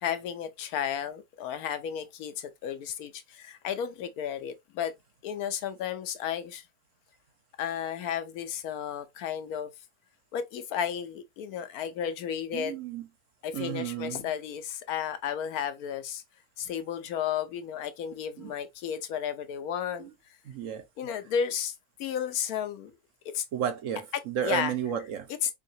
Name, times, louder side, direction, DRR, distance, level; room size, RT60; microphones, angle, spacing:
voice 1, 0.0-4.9 5.2-6.6 7.6-9.7 10.3-12.8 13.4-16.2 16.6-20.1 21.0-21.7 22.0-22.9 23.3-23.4 24.4-24.7 25.4-25.5, left 8 dB, 75° left, 1.1 m, -33 dB
voice 2, 12.5-13.1 13.5-14.3 18.4-18.5 20.0-20.1 20.4-20.8 23.5-25.3, right 9 dB, 65° right, 1.1 m, -33 dB
4.7 x 2.9 x 2.7 m
omnidirectional pair, 1.6 m